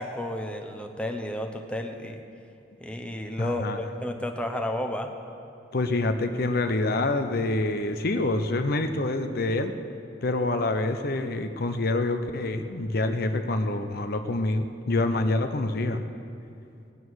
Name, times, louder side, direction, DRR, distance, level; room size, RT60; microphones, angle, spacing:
voice 1, 0.0-2.2 2.8-5.1, left 1 dB, 5° left, 4 dB, 0.9 m, -32 dB
voice 2, 3.4-3.8 5.7-9.8 10.2-16.0, left 2 dB, 55° left, 7 dB, 0.7 m, -26 dB
19.0 x 9.3 x 6.3 m, 2.6 s
head